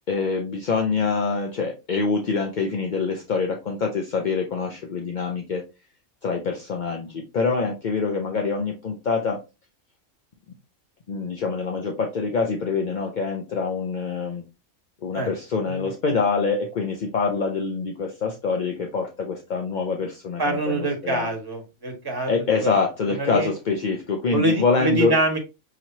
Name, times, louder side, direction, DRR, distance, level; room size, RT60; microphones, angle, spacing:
voice 1, 0.1-5.6 6.2-9.4 11.1-14.4 15.0-21.3 22.3-25.1, left 4 dB, 50° left, 2 dB, 0.6 m, -25 dB
voice 2, 20.4-22.3 22.6-22.7 23.2-23.5 24.3-25.4, right 2 dB, 15° right, 1 dB, 1.3 m, -25 dB
5.8 x 3.0 x 2.7 m, 0.27 s
omnidirectional pair, 1.4 m